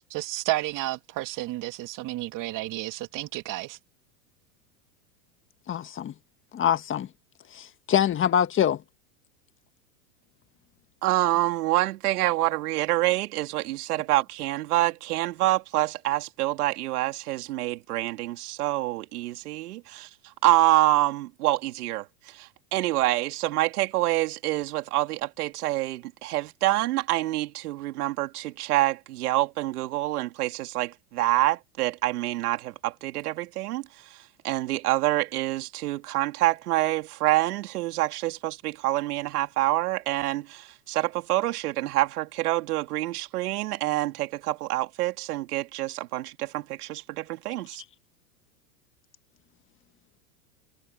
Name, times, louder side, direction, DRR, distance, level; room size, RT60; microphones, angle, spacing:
voice 1, 0.1-3.8, right 17 dB, 45° right, 2.7 m, -31 dB
voice 2, 5.7-6.1 6.5-7.1 7.5-8.8, left 9 dB, 25° left, 1.6 m, -24 dB
voice 3, 11.0-47.8, right 16 dB, 75° right, 3.2 m, -27 dB
supercardioid pair, 125°, 45 cm